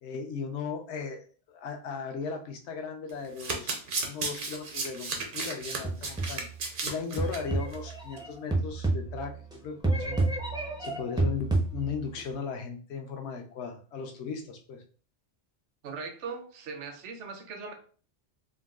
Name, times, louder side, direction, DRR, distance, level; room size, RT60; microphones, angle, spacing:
voice 1, 0.0-6.5 6.8-10.2 10.8-14.8, left 5 dB, 70° left, 3 dB, 0.9 m, -37 dB
Domestic sounds home sounds, 3.1-7.4 7.7-7.9 8.2-8.3, right 3 dB, 55° right, 0.7 m, -34 dB
sound 1, 5.8-6.6 7.2-9.5 9.8-12.2, right 2 dB, 5° right, 0.4 m, -30 dB
voice 2, 15.8-17.7, right 5 dB, 80° right, 5 dB, 0.9 m, -39 dB
3.7 x 2.3 x 2.3 m, 0.41 s
omnidirectional pair, 1.2 m